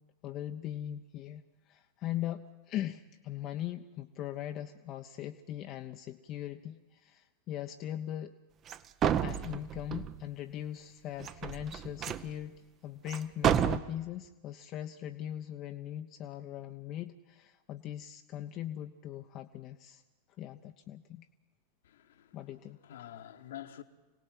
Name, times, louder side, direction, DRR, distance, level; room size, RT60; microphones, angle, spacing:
voice 1, 0.2-8.3 9.2-20.0 20.4-21.3 22.3-22.8, left 11 dB, 35° left, 0.8 m, -40 dB
sound 1, 8.7-8.8 9.0-10.2 11.2-12.3 13.1-13.2 13.4-13.8, right 9 dB, 30° right, 0.8 m, -30 dB
voice 2, 21.8-22.4 22.8-23.8, left 11 dB, 60° left, 1.3 m, -47 dB
26.0 x 18.5 x 7.7 m
figure-of-eight pair, 90°, 0 cm